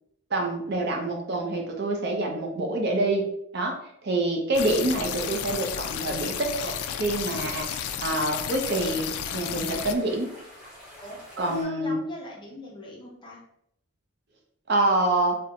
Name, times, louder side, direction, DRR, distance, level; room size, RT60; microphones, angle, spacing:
voice 1, 0.3-3.3 3.5-3.7 4.0-10.3 11.4-12.0 14.7-15.4, right 2 dB, 45° right, 1 dB, 0.5 m, -26 dB
sound 1, 4.5-9.9, left 9 dB, 85° left, 0.3 m, -32 dB
sound 2, 4.9-11.6, equal, 5° right, 0.9 m, -48 dB
voice 2, 11.0-13.4, equal, 20° left, -2 dB, 0.6 m, -41 dB
4.2 x 2.1 x 2.5 m, 0.74 s
head